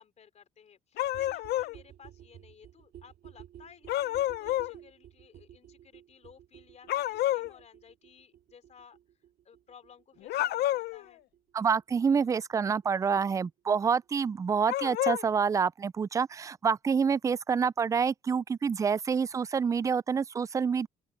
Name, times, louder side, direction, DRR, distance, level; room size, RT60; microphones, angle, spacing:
voice 1, 0.0-9.0 9.4-11.2, left 7 dB, 40° left, 3.7 m, -57 dB
sound 1, 1.0-1.8 3.9-4.7 6.9-7.5 10.2-11.0 14.7-15.2, left 14 dB, 70° left, 0.7 m, -29 dB
sound 2, 1.0-12.6 12.8-12.9 13.1-13.2 13.4-13.5 13.7-13.8 14.0-14.1 14.3-14.4, right 11 dB, 65° right, 2.6 m, -54 dB
voice 2, 11.5-20.9, right 6 dB, 20° right, 0.3 m, -27 dB
open air
cardioid pair, 110°, 17 cm